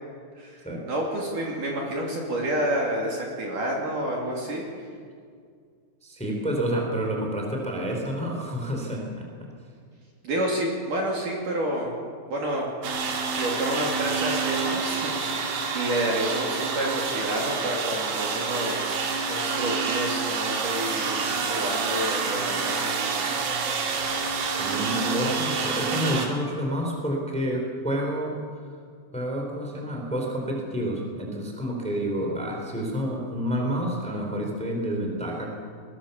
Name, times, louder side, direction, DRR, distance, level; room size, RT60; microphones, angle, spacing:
voice 1, 0.4-4.7 10.2-11.9 12.3-12.7 13.2-15.4 15.7-18.8 19.3-23.3, right 1 dB, 50° right, -2 dB, 3.9 m, -29 dB
voice 2, 6.0-9.2 24.4-28.4 29.1-35.5, equal, ahead, 0 dB, 3.5 m, -29 dB
sound 1, 12.8-26.3, right 5 dB, 70° right, 4.5 m, -28 dB
22.0 x 20.5 x 7.2 m, 2.1 s
omnidirectional pair, 5.3 m